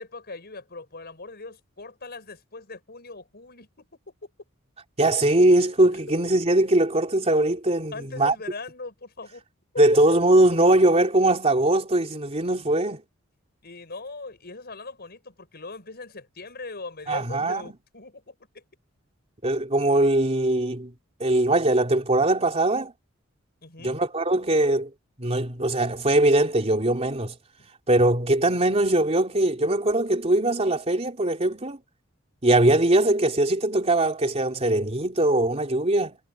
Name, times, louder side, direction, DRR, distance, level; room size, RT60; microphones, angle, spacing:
voice 1, 0.0-4.1 7.9-9.4 13.6-18.6 23.6-24.0, left 3 dB, 50° left, 6.0 m, -40 dB
voice 2, 5.0-8.3 9.8-13.0 17.1-17.6 19.4-20.9 21.2-22.9 23.8-24.9 25.2-27.3 27.9-31.8 32.4-36.2, right 1 dB, 30° right, 3.4 m, -21 dB
head